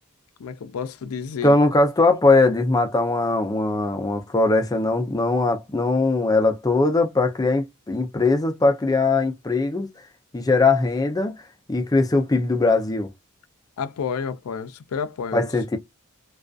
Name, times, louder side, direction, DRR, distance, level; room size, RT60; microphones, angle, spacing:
voice 1, 0.4-1.6 13.8-15.5, left 6 dB, 85° left, 0.4 m, -30 dB
voice 2, 1.4-9.9 10.3-11.4 11.7-13.1 15.3-15.8, left 3 dB, 15° left, 0.4 m, -20 dB
2.4 x 2.3 x 2.3 m
head